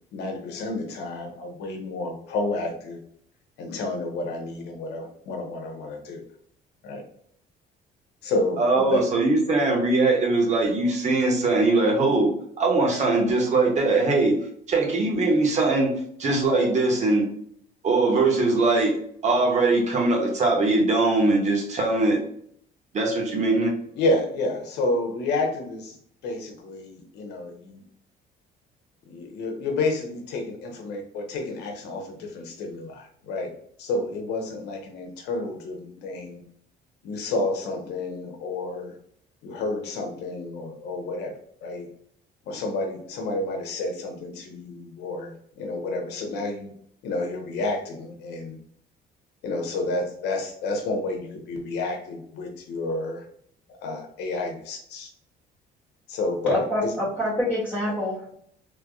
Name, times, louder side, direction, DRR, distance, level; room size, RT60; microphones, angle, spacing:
voice 1, 0.1-3.0 3.6-6.2 6.8-7.0 8.2-9.1 23.9-26.0 26.2-27.8 29.1-33.5 33.8-36.4 37.0-38.9 39.4-41.9 42.4-46.7 47.0-48.6 49.4-53.2 53.8-55.1 56.1-57.5, left 2 dB, 80° left, 3 dB, 1.1 m, -30 dB
voice 2, 8.6-14.4 14.7-15.9 16.2-17.3 17.8-18.9 19.2-22.2 22.9-23.7, right 3 dB, 45° right, 0 dB, 1.4 m, -21 dB
voice 3, 56.5-58.3, left 1 dB, 5° right, -9 dB, 1.4 m, -27 dB
3.5 x 3.4 x 2.3 m, 0.66 s
cardioid pair, 110°, 17 cm